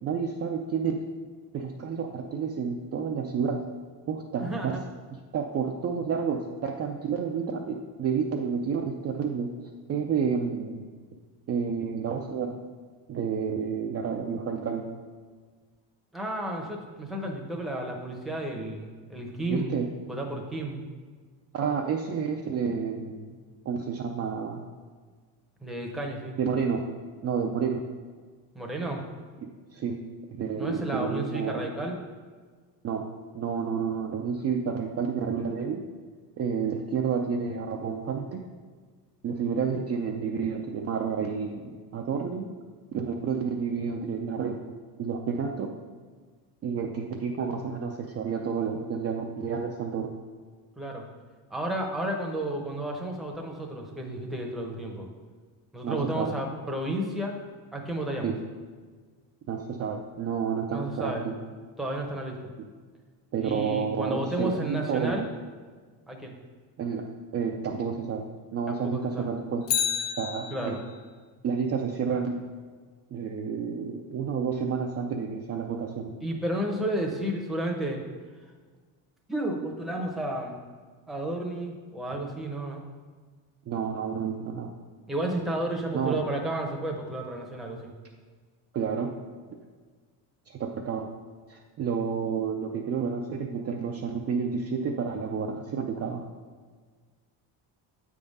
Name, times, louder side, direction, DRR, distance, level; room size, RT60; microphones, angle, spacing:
voice 1, 0.0-1.0 1.5-3.6 4.1-4.8 5.3-9.5 9.9-10.8 11.5-12.6 13.1-14.9 19.5-19.9 21.5-23.4 23.7-24.7 26.4-26.8 27.2-27.8 29.7-30.0 30.4-31.6 32.8-33.1 33.3-35.8 36.4-38.5 39.2-42.5 42.9-44.6 45.0-45.7 46.6-50.1 55.8-56.4 58.2-58.4 59.5-61.3 63.3-65.3 66.8-67.1 67.3-68.3 68.5-69.7 70.2-70.8 71.4-72.4 73.1-76.1 83.7-84.8 85.9-86.2 88.7-89.1 90.5-91.1 91.5-96.3, right 6 dB, 35° right, 1 dB, 0.4 m, -30 dB
voice 2, 4.4-4.8 16.1-19.8 20.1-20.8 25.6-26.3 28.5-29.0 30.6-32.0 50.8-51.0 51.5-55.1 55.7-57.4 57.7-58.3 60.7-61.3 61.8-62.4 63.4-65.3 66.1-66.3 68.7-69.3 70.5-70.8 76.2-78.0 79.3-80.6 81.1-82.9 85.1-87.9, right 1 dB, ahead, 0 dB, 0.8 m, -32 dB
Bicycle, 69.6-71.0 79.3-79.4, left 8 dB, 45° left, 0.7 m, -30 dB
7.8 x 3.6 x 5.3 m, 1.5 s
cardioid pair, 145°, 44 cm